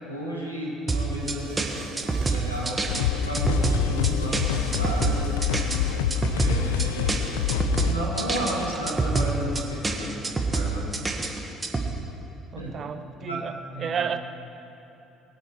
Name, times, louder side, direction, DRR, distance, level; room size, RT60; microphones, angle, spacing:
voice 1, 0.0-1.6 1.9-5.2 5.6-5.7 6.1-7.4 7.7-10.2 10.5-10.9 12.6-12.7 13.3-13.4 13.7-14.0, equal, 90° left, -4 dB, 2.0 m, -33 dB
sound 1, 0.9-11.9, right 3 dB, 20° right, 1.6 m, -27 dB
sound 2, 1.1-9.2 11.3-11.4, right 3 dB, 85° right, 1.4 m, -46 dB
sound 3, 2.9-7.9, left 10 dB, 70° left, 0.5 m, -26 dB
voice 2, 12.5-14.2, right 7 dB, 45° right, 9 dB, 0.9 m, -32 dB
22.0 x 8.3 x 4.8 m, 3.0 s
figure-of-eight pair, 50°, 0 cm